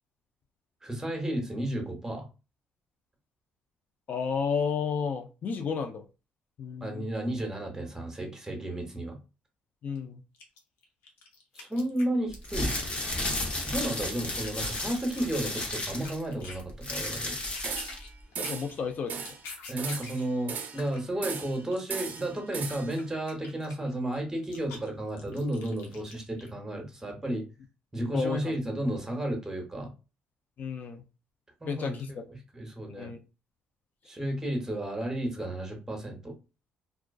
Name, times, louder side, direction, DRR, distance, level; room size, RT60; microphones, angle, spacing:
voice 1, 0.8-2.3 6.8-9.2 11.5-12.7 13.6-17.4 19.7-27.4 27.9-29.9 31.6-32.2 32.5-33.1 34.0-36.3, right 1 dB, 15° right, 3 dB, 0.9 m, -33 dB
voice 2, 4.1-6.0 6.6-7.1 9.8-10.2 18.4-19.4 28.1-28.6 30.6-31.0 31.6-32.2 32.9-33.2, left 6 dB, 50° left, 6 dB, 0.4 m, -32 dB
sound 1, 10.0-10.1 10.3-12.5 12.8-16.6 16.9-17.1 17.4-20.3 20.5-26.5, left 4 dB, 85° left, 0.7 m, -46 dB
sound 2, 12.4-18.1, left 1 dB, 35° left, 0.9 m, -33 dB
sound 3, 17.6-18.1 18.3-18.7 19.1-19.4 19.8-20.9 21.2-21.6 21.9-23.0, right 6 dB, 50° right, 0.4 m, -37 dB
2.3 x 2.3 x 2.3 m, 0.31 s
cardioid pair, 80°, 4 cm